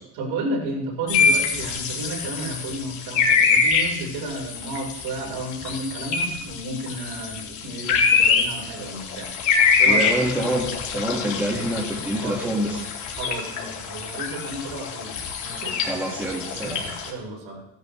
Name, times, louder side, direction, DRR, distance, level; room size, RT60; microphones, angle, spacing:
voice 1, 0.1-9.3 9.8-10.1 12.2-12.4 13.2-15.1 15.4-15.8 16.5-17.6, right 1 dB, 70° right, -1 dB, 5.0 m, -32 dB
sound 1, 1.1-17.1, left 5 dB, 45° left, 3.1 m, -24 dB
voice 2, 9.9-12.9 15.9-16.8, right 1 dB, 5° right, -3 dB, 2.0 m, -26 dB
17.0 x 10.5 x 3.4 m, 0.85 s
cardioid pair, 140°, 39 cm